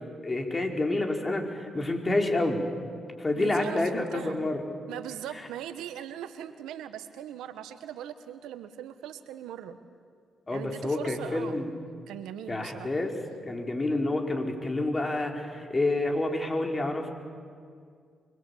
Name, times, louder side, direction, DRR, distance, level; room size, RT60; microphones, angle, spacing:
voice 1, 0.2-2.6 3.2-4.6 5.3-5.5 10.5-11.7 12.5-13.1 13.4-17.1, left 2 dB, 30° left, 2 dB, 4.7 m, -28 dB
voice 2, 3.3-4.4 4.9-9.8 10.5-11.6 12.1-12.9, right 10 dB, 85° right, 11 dB, 1.2 m, -40 dB
24.5 x 22.5 x 8.6 m, 2.2 s
supercardioid pair, 55°, 0 cm